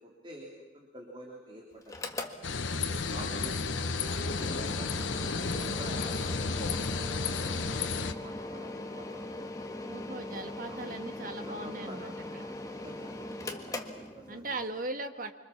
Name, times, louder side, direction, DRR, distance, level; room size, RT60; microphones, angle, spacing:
voice 1, 0.0-0.5 0.7-2.0 2.9-5.0 5.5-9.5 10.3-11.0 11.4-12.6 12.8-14.6, equal, 25° right, -1 dB, 3.4 m, -48 dB
Mechanical fan, 1.8-14.6, left 1 dB, 15° left, 1.6 m, -41 dB
sound 1, 2.4-8.1, left 4 dB, 80° left, 1.1 m, -32 dB
voice 2, 2.9-3.2 9.9-12.4 14.3-15.3, right 2 dB, 45° right, 7 dB, 1.6 m, -39 dB
26.0 x 25.5 x 7.2 m, 1.2 s
head